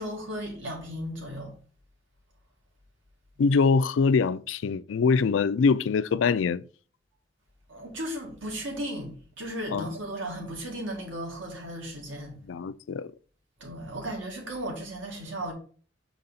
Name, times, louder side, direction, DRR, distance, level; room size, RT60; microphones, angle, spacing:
voice 1, 0.0-1.6 7.7-12.4 13.6-15.5, right 1 dB, 90° right, 1.9 m, -35 dB
voice 2, 3.4-6.6 9.7-9.9 12.5-13.1, left 5 dB, 85° left, 0.4 m, -23 dB
6.5 x 4.0 x 4.1 m
head